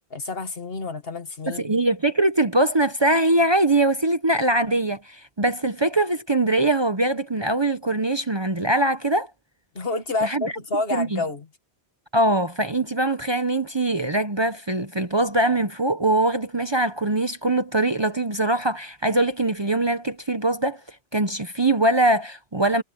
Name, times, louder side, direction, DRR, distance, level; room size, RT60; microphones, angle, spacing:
voice 1, 0.1-1.8 9.7-11.5, left 3 dB, 65° left, 2.1 m, -29 dB
voice 2, 1.5-9.3 10.2-10.5 10.9-11.2 12.1-20.8 21.1-22.8, right 2 dB, 30° right, 0.8 m, -22 dB
omnidirectional pair, 1.1 m